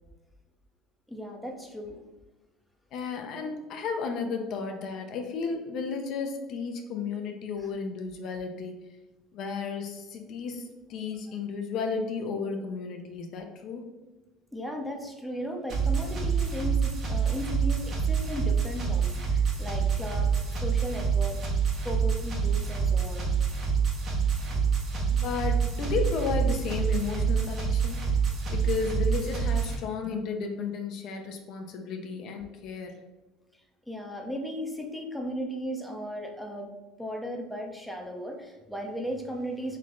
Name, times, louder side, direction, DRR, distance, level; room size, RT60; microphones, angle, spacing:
voice 1, 1.1-2.0 7.6-7.7 14.5-21.4 21.8-23.3 33.9-36.7 37.0-39.8, equal, 5° left, 1 dB, 0.7 m, -36 dB
voice 2, 2.9-8.8 9.3-13.9 25.1-28.0 28.5-33.0, left 5 dB, 60° left, 4 dB, 0.6 m, -33 dB
sound 1, 15.7-29.7, right 6 dB, 45° right, 1.1 m, -27 dB
3.3 x 3.2 x 3.8 m, 1.1 s
supercardioid pair, 105°, 0 cm